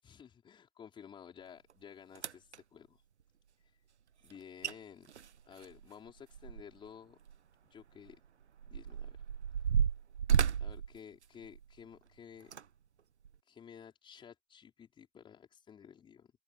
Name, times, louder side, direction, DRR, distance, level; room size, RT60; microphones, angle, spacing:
voice 1, 0.0-3.0 3.6-3.8 4.2-5.1 5.4-7.2 7.7-8.2 8.6-9.2 9.6-9.7 10.6-12.5 13.4-16.3, left 8 dB, 15° left, 5.1 m, -54 dB
sound 1, 1.7-1.8 2.2-2.6 4.3-4.4 4.6-4.7 5.1-6.9 7.2-7.4 8.1-11.8 12.4-12.6 13.2-13.4, right 8 dB, 80° right, 1.3 m, -33 dB
open air
hypercardioid pair, 135°, 33 cm